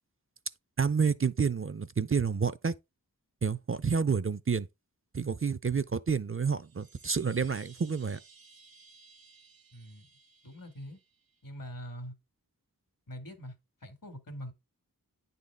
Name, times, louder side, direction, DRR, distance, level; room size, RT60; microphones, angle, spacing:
voice 1, 0.8-2.7 3.4-4.7 5.1-8.2, right 5 dB, 40° right, 0.5 m, -29 dB
sound 1, 6.5-11.5, right 4 dB, 85° right, 1.0 m, -58 dB
voice 2, 9.7-10.0 10.4-11.0 11.4-12.1 13.1-13.6 13.8-14.5, equal, 70° left, 2.0 m, -43 dB
9.5 x 4.1 x 3.4 m
wide cardioid pair, 50°, 34 cm